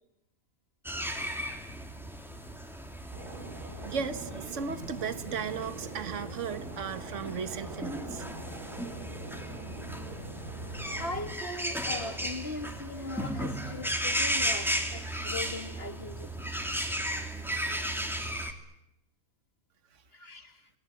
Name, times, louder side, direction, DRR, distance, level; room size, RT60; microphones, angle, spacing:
sound 1, 0.8-18.5, equal, ahead, 2.5 m, -35 dB
sound 2, 3.1-11.3, right 3 dB, 85° right, 3.0 m, -43 dB
voice 1, 3.8-8.2, right 6 dB, 55° right, 1.7 m, -36 dB
voice 2, 11.0-16.5 20.1-20.7, left 2 dB, 40° left, 2.4 m, -39 dB
27.5 x 20.0 x 9.0 m
omnidirectional pair, 1.6 m